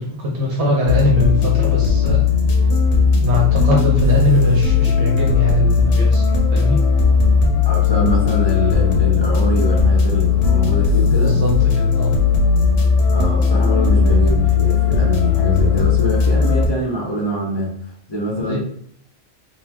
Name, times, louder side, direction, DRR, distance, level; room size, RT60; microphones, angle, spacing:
voice 1, 0.2-2.2 3.2-6.2 6.5-6.8 11.0-11.5 11.7-12.1 18.4-18.6, left 1 dB, 70° right, -3 dB, 1.0 m, -21 dB
sound 1, 0.9-16.7, left 5 dB, 75° left, 0.9 m, -16 dB
voice 2, 7.7-11.4 13.0-17.7 18.1-18.6, equal, 30° left, -4 dB, 0.5 m, -23 dB
2.8 x 2.1 x 3.3 m, 0.64 s
omnidirectional pair, 1.2 m